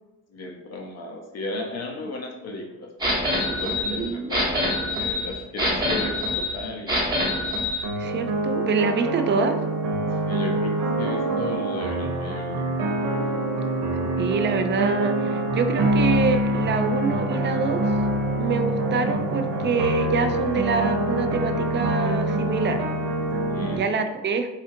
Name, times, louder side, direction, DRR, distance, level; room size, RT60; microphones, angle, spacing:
voice 1, 0.3-7.1 10.3-12.7 23.5-23.8, left 2 dB, 55° left, 0 dB, 0.7 m, -35 dB
sound 1, 3.0-7.8, left 1 dB, 15° right, 1.0 m, -25 dB
voice 2, 3.5-4.5 8.0-9.6 14.2-18.0 18.4-22.8 23.7-24.5, right 4 dB, 40° right, 7 dB, 0.4 m, -26 dB
sound 2, 7.8-23.8, right 1 dB, 80° right, 0.7 m, -25 dB
4.2 x 2.4 x 2.6 m, 1.1 s
cardioid pair, 90°, 30 cm